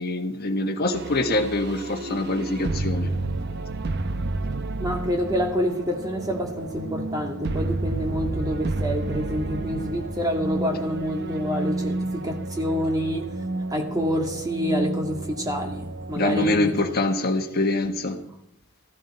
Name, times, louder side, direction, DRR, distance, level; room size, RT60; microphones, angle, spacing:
voice 1, 0.0-3.1 16.2-18.2, left 2 dB, 45° left, 1.4 m, -24 dB
sound 1, 0.9-17.0, right 2 dB, 50° right, 0.7 m, -31 dB
voice 2, 4.8-16.7, equal, 15° right, 2.2 m, -27 dB
15.0 x 14.5 x 4.4 m
head